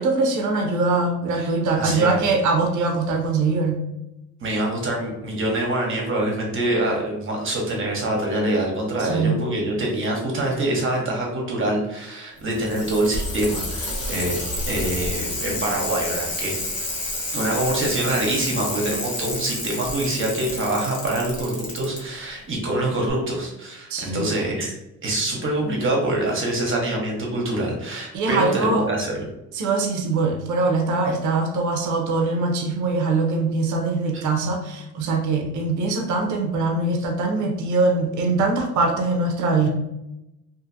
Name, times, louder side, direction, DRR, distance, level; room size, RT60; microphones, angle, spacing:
voice 1, 0.0-3.8 9.0-9.4 23.9-24.3 28.1-28.9 29.5-39.7, right 3 dB, 75° right, 2 dB, 0.7 m, -22 dB
voice 2, 1.8-2.2 4.4-14.4 14.7-16.5 17.3-24.7 25.0-29.3 34.1-34.2, right 1 dB, 40° right, -1 dB, 1.0 m, -25 dB
Bicycle, 12.4-22.0 23.1-23.2, left 2 dB, 55° left, 1.0 m, -29 dB
2.6 x 2.5 x 2.6 m, 0.90 s
cardioid pair, 90°, 30 cm